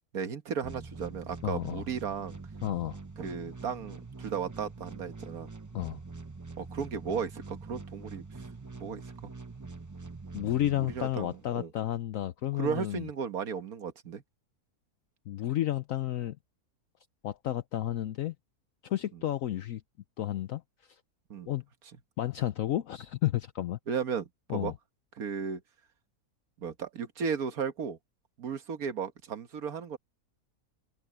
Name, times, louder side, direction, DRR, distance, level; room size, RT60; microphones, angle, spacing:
voice 1, 0.1-2.4 3.2-5.5 6.6-8.3 8.8-9.3 10.8-11.7 12.6-14.2 19.1-19.2 21.3-21.5 23.9-24.7 25.2-25.6 26.6-28.0 28.4-30.0, right 6 dB, 65° right, 1.8 m, -35 dB
sound 1, 0.6-11.6, right 3 dB, 30° right, 0.3 m, -44 dB
voice 2, 1.4-1.8 2.6-3.0 5.7-6.0 10.3-13.1 15.3-16.4 17.2-18.3 18.8-19.8 20.2-20.6 21.5-21.6 22.2-23.8 24.5-24.7, left 13 dB, 65° left, 1.0 m, -31 dB
omnidirectional pair, 1.7 m